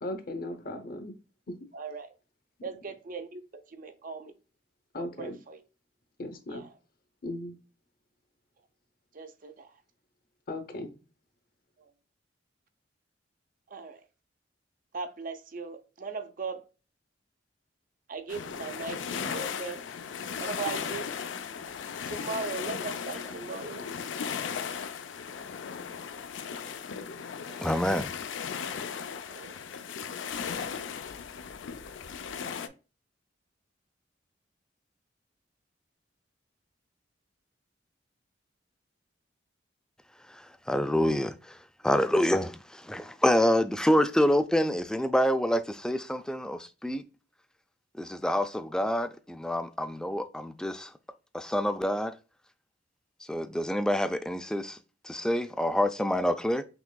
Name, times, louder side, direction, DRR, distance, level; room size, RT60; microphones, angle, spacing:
voice 1, 0.0-1.2 1.5-1.7 4.9-5.4 6.2-6.7 7.2-7.6 10.5-11.0, left 1 dB, 50° left, 0.8 m, -37 dB
voice 2, 1.7-2.1 2.6-4.3 4.9-5.6 6.5-6.7 9.1-9.7 11.8-11.9 13.7-14.0 14.9-16.6 18.1-19.8 20.4-21.1 22.0-23.8 27.5-27.6 29.3-29.6, right 4 dB, 50° right, 0.6 m, -38 dB
sound 1, 18.3-32.7, left 7 dB, 85° left, 0.5 m, -37 dB
voice 3, 27.6-28.1 40.3-40.4 40.7-41.6 41.8-47.1 48.0-50.9 51.3-52.1 53.3-54.8 55.0-56.6, equal, 5° left, 0.3 m, -27 dB
5.9 x 3.0 x 2.2 m
head